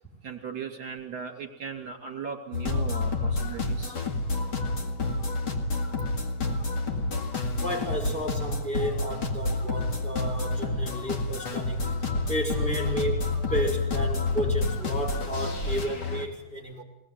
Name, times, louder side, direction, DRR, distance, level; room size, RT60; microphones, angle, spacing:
voice 1, 0.2-4.0 7.0-7.2 9.2-9.3, right 6 dB, 50° right, 4 dB, 3.6 m, -38 dB
sound 1, 2.5-16.3, left 3 dB, 55° left, 2.7 m, -29 dB
voice 2, 7.6-16.8, right 1 dB, 5° left, -1 dB, 5.2 m, -32 dB
21.5 x 18.5 x 9.4 m, 0.87 s
omnidirectional pair, 2.3 m